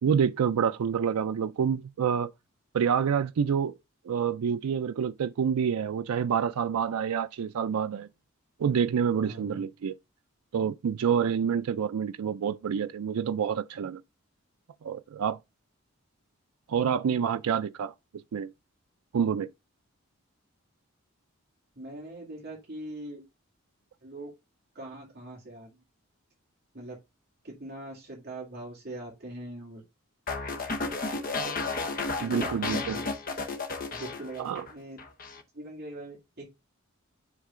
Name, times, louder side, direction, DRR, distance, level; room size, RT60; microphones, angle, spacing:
voice 1, 0.0-2.3 2.7-3.7 4.1-8.1 8.6-10.0 10.5-14.0 14.8-15.4 16.7-17.9 18.3-18.5 19.1-19.5 32.2-33.0 34.4-34.7, right 7 dB, 90° right, 0.4 m, -27 dB
voice 2, 9.2-9.6 21.8-23.2 24.0-24.3 24.7-25.8 26.7-27.0 27.4-29.8 32.2-33.1 33.9-35.0 35.5-36.4, right 1 dB, 45° right, 2.4 m, -42 dB
sound 1, 30.3-34.7 35.0-35.4, left 3 dB, 40° left, 0.9 m, -33 dB
9.8 x 3.7 x 3.7 m
head